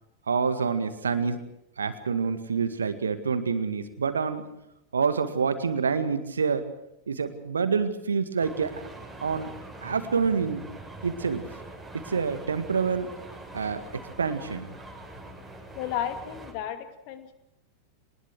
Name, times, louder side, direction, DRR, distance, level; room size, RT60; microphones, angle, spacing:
voice 1, 0.3-1.4 1.8-4.5 4.9-6.7 7.1-8.8 9.2-9.5 9.8-10.6 11.0-11.4 11.9-13.1 13.5-13.8 14.2-14.7, right 5 dB, 70° right, 10 dB, 2.0 m, -27 dB
sound 1, 8.4-16.5, right 2 dB, 5° right, 6.8 m, -43 dB
voice 2, 15.7-17.3, left 10 dB, 45° left, 8 dB, 2.4 m, -33 dB
24.5 x 20.0 x 6.4 m, 0.84 s
figure-of-eight pair, 90°, 0 cm